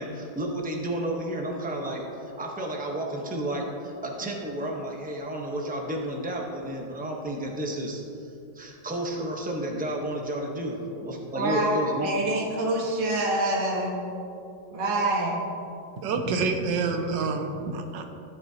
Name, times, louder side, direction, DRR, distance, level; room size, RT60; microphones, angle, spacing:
voice 1, 0.0-12.2, right 1 dB, 5° right, 0 dB, 0.7 m, -32 dB
voice 2, 11.4-14.0 14.7-15.4, right 1 dB, 30° right, -2 dB, 1.3 m, -26 dB
voice 3, 16.0-18.0, right 4 dB, 85° right, 6 dB, 1.5 m, -27 dB
15.5 x 7.6 x 2.8 m, 2.7 s
omnidirectional pair, 1.9 m